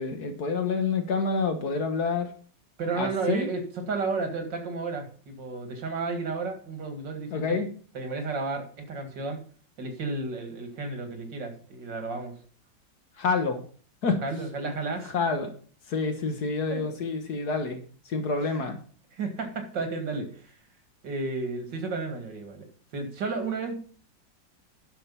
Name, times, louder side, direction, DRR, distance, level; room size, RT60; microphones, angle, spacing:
voice 1, 0.0-2.3 3.0-3.5 7.3-7.7 13.2-13.6 14.0-14.2 15.1-15.5 15.9-17.8 18.1-18.8, left 4 dB, 60° left, 6 dB, 1.8 m, -27 dB
voice 2, 2.8-7.6 7.9-9.4 9.8-12.4 14.2-15.1 16.7-16.8 18.4-18.6 19.1-20.5 21.0-22.7 22.9-23.7, right 3 dB, 85° right, 6 dB, 2.6 m, -32 dB
10.0 x 6.4 x 5.5 m, 0.43 s
omnidirectional pair, 1.9 m